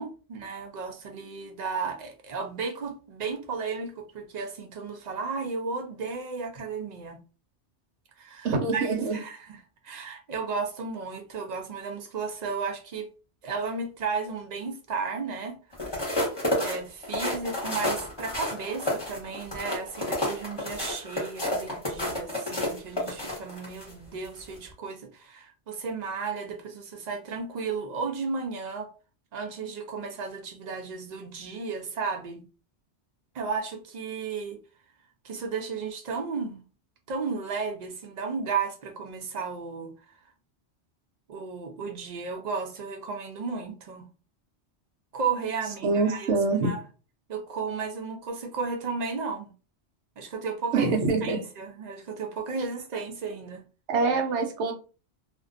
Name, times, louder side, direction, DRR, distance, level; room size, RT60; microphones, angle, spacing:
voice 1, 0.0-7.2 8.2-9.6 9.8-13.1 13.4-15.6 16.6-28.9 29.3-32.4 33.3-34.6 35.2-36.6 37.1-39.9 41.3-44.0 45.1-46.3 46.6-46.8 47.3-49.5 50.2-50.9 51.2-53.6, right 5 dB, 60° right, 0.4 m, -34 dB
voice 2, 8.4-9.2 45.8-46.7 50.7-51.4 53.9-54.7, right 4 dB, 80° right, 0.9 m, -25 dB
sound 1, 15.7-23.9 24.4-24.6, left 1 dB, 25° left, 0.9 m, -30 dB
2.4 x 2.2 x 2.4 m
omnidirectional pair, 1.2 m